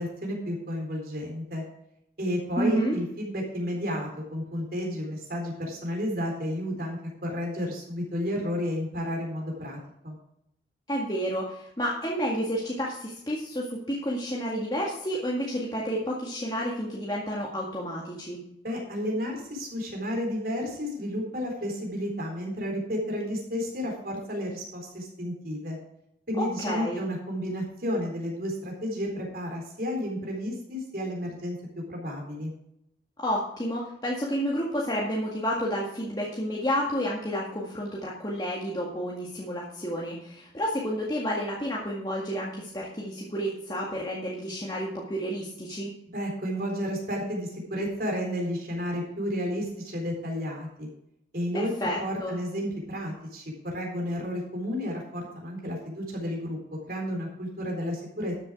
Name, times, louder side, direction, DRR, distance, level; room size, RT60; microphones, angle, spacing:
voice 1, 0.0-1.6 2.2-9.8 10.0-10.1 18.6-25.8 26.3-31.6 31.9-32.5 46.1-50.9 51.3-51.7 52.0-56.6 56.9-58.3, equal, 50° right, 0 dB, 4.0 m, -32 dB
voice 2, 2.6-3.0 10.9-18.4 26.4-27.0 33.2-45.9 51.5-52.4, equal, 25° left, -4 dB, 1.9 m, -30 dB
13.0 x 7.3 x 4.8 m, 0.77 s
head